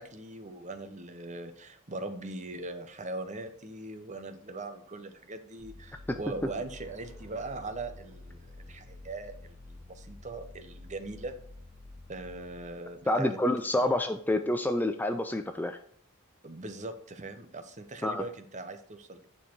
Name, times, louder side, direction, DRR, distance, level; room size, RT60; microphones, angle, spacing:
voice 1, 0.0-11.3 12.1-13.4 13.8-13.9 16.4-19.3, right 2 dB, 35° right, 9 dB, 0.9 m, -40 dB
sound 1, 5.6-13.0, left 2 dB, 25° left, 1.5 m, -50 dB
voice 2, 13.1-15.8 18.0-18.2, left 1 dB, 10° left, 7 dB, 0.4 m, -28 dB
9.9 x 4.6 x 4.5 m, 0.64 s
head